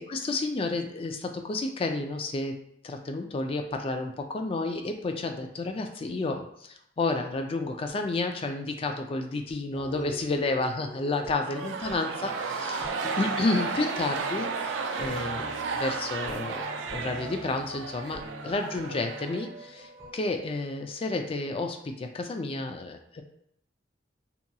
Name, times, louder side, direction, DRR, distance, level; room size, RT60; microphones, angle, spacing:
voice 1, 0.1-16.7 16.9-23.2, left 3 dB, 30° left, 4 dB, 0.3 m, -31 dB
sound 1, 9.7-20.1, equal, 15° right, 0.7 m, -45 dB
sound 2, 11.4-19.9, right 4 dB, 85° right, 0.3 m, -33 dB
2.8 x 2.6 x 2.2 m, 0.75 s
head